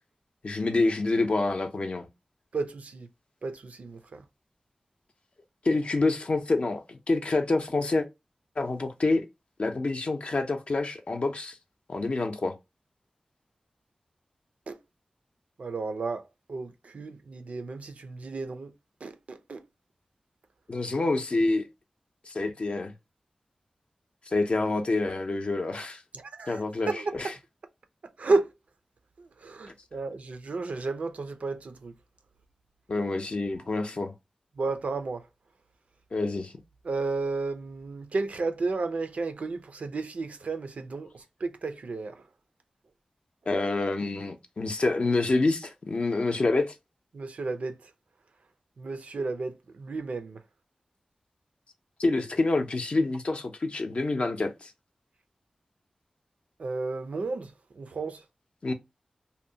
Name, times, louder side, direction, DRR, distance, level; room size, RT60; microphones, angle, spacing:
voice 1, 0.4-2.1 5.6-8.1 8.6-9.2 9.6-11.6 11.9-12.6 20.7-21.7 22.3-22.9 24.3-26.0 26.5-27.3 32.9-34.1 36.1-36.5 43.5-46.7 52.0-54.7 58.6-58.7, left 3 dB, 55° left, 0.5 m, -27 dB
voice 2, 2.5-3.1 3.4-4.2 14.7-14.8 15.6-16.2 16.5-18.7 19.0-19.6 26.1-27.2 28.2-28.5 29.2-31.9 34.6-35.2 36.8-42.2 47.1-47.8 48.8-50.4 56.6-57.5 57.8-58.2, right 3 dB, 70° right, 0.4 m, -32 dB
2.7 x 2.1 x 2.6 m
cardioid pair, 55°, 2 cm